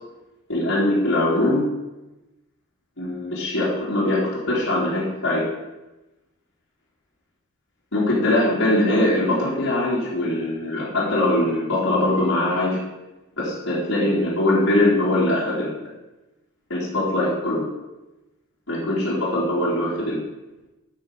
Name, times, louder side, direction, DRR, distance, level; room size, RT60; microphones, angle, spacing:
voice 1, 0.5-1.7 3.0-5.4 7.9-12.8 13.4-15.8 16.7-17.6 18.7-20.2, left 1 dB, 70° left, -8 dB, 3.5 m, -22 dB
12.5 x 5.9 x 6.6 m, 1.0 s
head